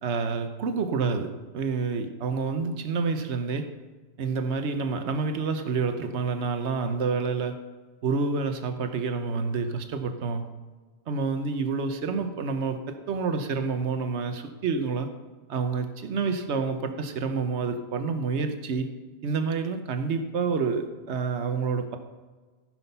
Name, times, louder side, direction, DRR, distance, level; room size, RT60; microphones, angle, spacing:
voice 1, 0.0-3.7 4.2-7.6 8.0-10.4 11.1-15.1 15.5-18.9 19.2-22.0, right 4 dB, 80° right, 7 dB, 1.2 m, -28 dB
15.0 x 6.3 x 5.5 m, 1.4 s
omnidirectional pair, 1.2 m